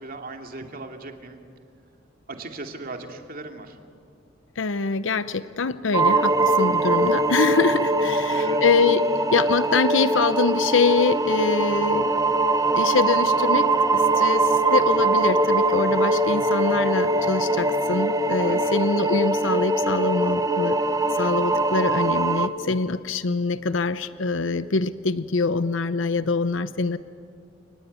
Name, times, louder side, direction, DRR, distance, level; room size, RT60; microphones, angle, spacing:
voice 1, 0.0-1.4 2.4-3.8 8.2-8.6 18.3-18.8, right 2 dB, 50° right, 4 dB, 2.6 m, -38 dB
voice 2, 4.6-12.1 12.7-13.7 13.9-14.4 14.7-20.8 21.2-27.0, left 4 dB, 75° left, 13 dB, 0.7 m, -24 dB
sound 1, 5.9-22.5, right 2 dB, 20° right, 1.0 m, -22 dB
29.0 x 19.5 x 9.6 m, 2.2 s
head